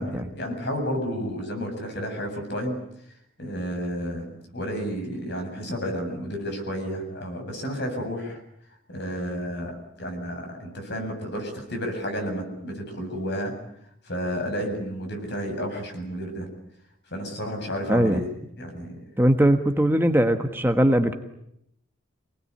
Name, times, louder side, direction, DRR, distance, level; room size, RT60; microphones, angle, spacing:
voice 1, 0.0-2.8 3.4-8.4 8.9-13.5 14.0-16.5 17.1-18.3 18.6-19.0, equal, 55° left, 4 dB, 7.7 m, -31 dB
voice 2, 17.9-18.2 19.2-21.1, right 1 dB, 10° right, 6 dB, 1.4 m, -20 dB
26.5 x 20.0 x 9.9 m, 0.77 s
head